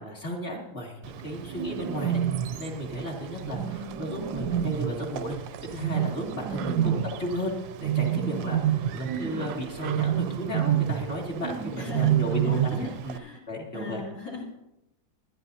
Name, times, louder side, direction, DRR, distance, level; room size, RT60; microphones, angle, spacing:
voice 1, 0.0-2.2 2.5-13.2 13.5-14.0, equal, 30° left, -1 dB, 2.5 m, -34 dB
Bird, 1.0-13.2, right 10 dB, 75° right, 1.3 m, -29 dB
voice 2, 3.3-4.1 6.7-7.1 11.8-13.4 13.7-14.4, left 3 dB, 60° left, -2 dB, 3.9 m, -40 dB
20.5 x 12.0 x 2.7 m, 0.87 s
omnidirectional pair, 2.2 m